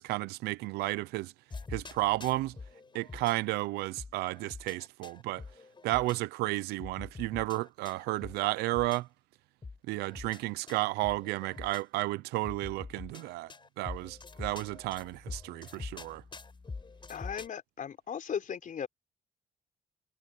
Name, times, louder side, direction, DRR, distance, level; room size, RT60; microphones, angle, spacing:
voice 1, 0.0-1.3 1.7-2.5 2.9-5.4 5.8-9.1 9.9-13.5 13.8-16.2, right 19 dB, 90° right, 0.8 m, -32 dB
sound 1, 1.5-3.3 4.0-6.2 6.8-9.0 9.6-11.8 12.4-17.5, left 4 dB, 30° left, 4.8 m, -45 dB
voice 2, 17.1-18.9, left 7 dB, 55° left, 3.8 m, -37 dB
supercardioid pair, 70°, 16 cm